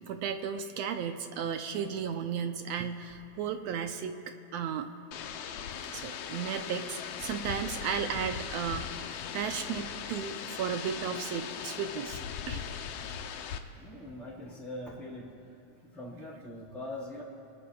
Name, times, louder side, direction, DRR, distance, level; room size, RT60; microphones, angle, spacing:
voice 1, 0.1-4.1 4.5-4.9 5.9-8.9 9.3-12.2 12.5-12.6, right 7 dB, 75° right, 6 dB, 1.6 m, -34 dB
sound 1, 5.1-13.6, left 8 dB, 70° left, 1.6 m, -39 dB
voice 2, 13.7-15.3 15.9-17.2, left 1 dB, ahead, -10 dB, 3.5 m, -42 dB
30.0 x 19.5 x 2.4 m, 2.5 s
omnidirectional pair, 3.4 m